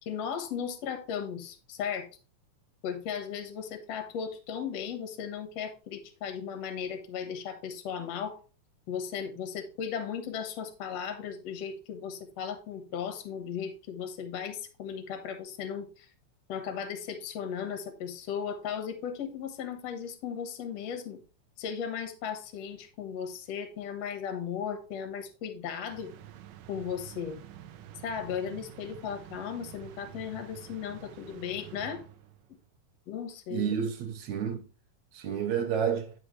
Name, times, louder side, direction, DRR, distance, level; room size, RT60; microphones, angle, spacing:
voice 1, 0.0-2.1 2.8-8.4 8.9-16.1 16.5-21.2 21.6-26.1 26.7-27.4 28.0-32.0 33.1-33.7, left 7 dB, 60° left, 2.2 m, -36 dB
sound 1, 25.9-32.6, right 11 dB, 90° right, 2.4 m, -48 dB
voice 2, 33.5-34.7 35.1-36.1, right 8 dB, 70° right, 2.2 m, -30 dB
9.9 x 5.7 x 3.1 m
omnidirectional pair, 3.7 m